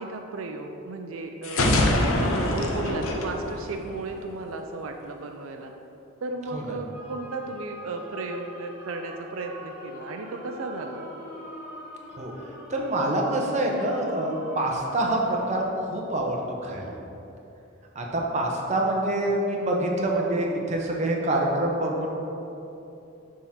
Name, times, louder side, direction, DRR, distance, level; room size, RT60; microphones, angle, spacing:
voice 1, 0.0-1.9 2.2-5.7 6.2-11.0, right 2 dB, 85° right, 4 dB, 0.5 m, -35 dB
sound 1, 1.4-4.3, left 1 dB, 85° left, 0.7 m, -24 dB
sound 2, 6.9-15.6, equal, 10° right, 1.5 m, -42 dB
voice 2, 12.7-16.9 17.9-22.1, right 1 dB, 35° right, -1 dB, 0.9 m, -26 dB
6.9 x 3.7 x 5.7 m, 2.9 s
head